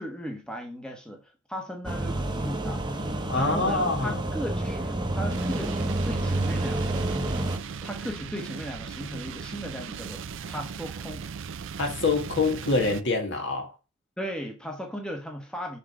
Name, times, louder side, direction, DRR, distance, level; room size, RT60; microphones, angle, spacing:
voice 1, 0.0-7.1 7.8-11.3 14.2-15.8, equal, 5° left, 1.1 m, -37 dB
sound 1, 1.8-7.6, right 1 dB, 20° right, 1.0 m, -29 dB
voice 2, 3.3-4.2 11.8-13.7, left 3 dB, 60° left, 1.7 m, -25 dB
sound 2, 5.3-13.0, right 6 dB, 65° right, 0.5 m, -38 dB
6.0 x 4.6 x 4.9 m
head